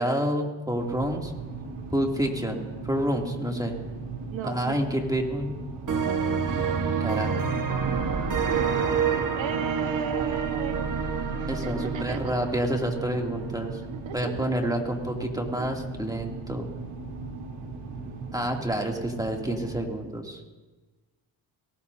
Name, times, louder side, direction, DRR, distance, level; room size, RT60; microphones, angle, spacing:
voice 1, 0.0-1.3 1.9-3.7 4.4-5.5 7.0-7.4 11.5-13.8 14.1-16.7 18.3-20.5, equal, 5° right, 0 dB, 2.8 m, -28 dB
sound 1, 0.7-19.9, right 3 dB, 90° right, 3.7 m, -38 dB
voice 2, 4.3-5.0 9.4-11.0 11.4-12.3 13.9-14.7 15.6-15.7, right 8 dB, 65° right, 7 dB, 1.6 m, -35 dB
sound 2, 5.9-13.5, right 6 dB, 40° right, 1.6 m, -28 dB
22.0 x 19.0 x 2.8 m, 1.2 s
supercardioid pair, 70°, 49 cm